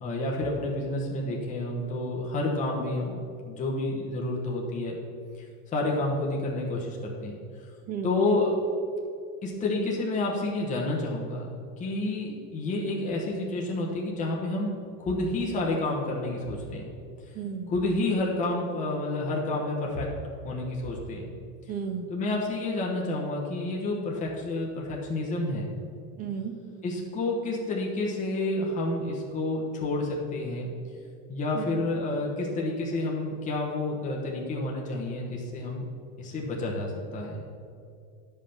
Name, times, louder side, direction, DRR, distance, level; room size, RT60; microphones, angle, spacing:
voice 1, 0.0-5.0 5.7-7.4 8.0-8.6 9.4-11.5 11.8-14.7 15.0-16.9 17.7-20.1 20.4-21.3 22.1-25.7 26.8-30.7 31.3-35.8 36.2-37.6, left 2 dB, 20° left, -2 dB, 1.1 m, -29 dB
voice 2, 7.9-8.3 17.4-17.7 21.7-22.1 26.2-26.5 31.5-31.8, right 7 dB, 25° right, 7 dB, 0.4 m, -33 dB
9.7 x 5.5 x 5.8 m, 2.4 s
supercardioid pair, 155°, 40 cm